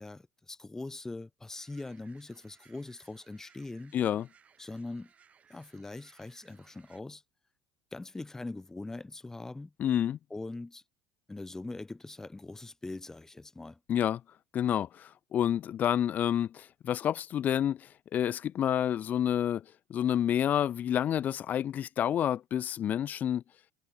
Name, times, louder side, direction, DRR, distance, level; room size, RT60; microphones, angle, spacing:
voice 1, 0.0-4.0 4.6-5.1 5.5-7.2 7.9-9.7 10.3-10.8 11.3-13.8, left 2 dB, 15° left, 0.8 m, -42 dB
sound 1, 1.5-7.0, right 7 dB, 35° right, 6.2 m, -64 dB
voice 2, 3.9-4.3 9.8-10.2 13.9-14.2 14.5-19.6 19.9-23.4, left 10 dB, 45° left, 0.8 m, -29 dB
hypercardioid pair, 80°, 4 cm